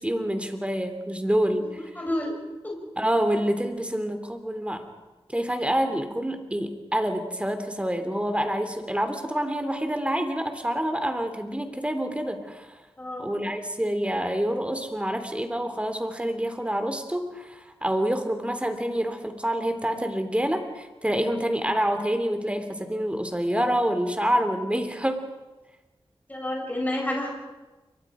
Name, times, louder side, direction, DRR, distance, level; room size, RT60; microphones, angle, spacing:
voice 1, 0.0-1.8 3.0-4.9 5.3-12.7 13.2-25.3, equal, 10° right, 7 dB, 3.0 m, -27 dB
voice 2, 2.0-2.4 2.6-2.8 13.0-13.3 26.3-27.3, left 1 dB, 15° left, 0 dB, 5.3 m, -29 dB
29.0 x 23.5 x 5.0 m, 1.1 s
wide cardioid pair, 65°, 10 cm